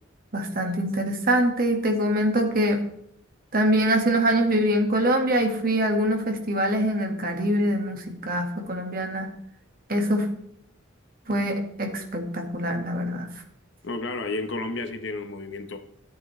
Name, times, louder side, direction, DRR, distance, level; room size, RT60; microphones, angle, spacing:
voice 1, 0.3-2.8 3.5-9.3 9.9-10.3 11.3-13.3, right 1 dB, 45° right, 3 dB, 1.9 m, -24 dB
voice 2, 13.8-15.8, left 2 dB, 60° left, 6 dB, 1.1 m, -31 dB
14.0 x 8.5 x 3.3 m, 0.69 s
head